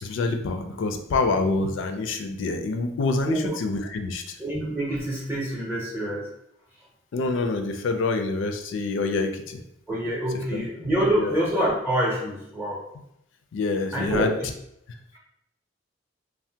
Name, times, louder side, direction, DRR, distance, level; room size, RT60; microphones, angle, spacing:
voice 1, 0.0-4.4 7.1-9.6 10.5-10.7 11.2-11.4 13.5-14.3, left 3 dB, 70° left, 6 dB, 0.4 m, -26 dB
voice 2, 3.2-3.5 4.4-6.3 9.9-12.8 13.9-14.3, right 1 dB, 15° right, -5 dB, 0.6 m, -26 dB
3.2 x 2.1 x 2.7 m, 0.79 s
head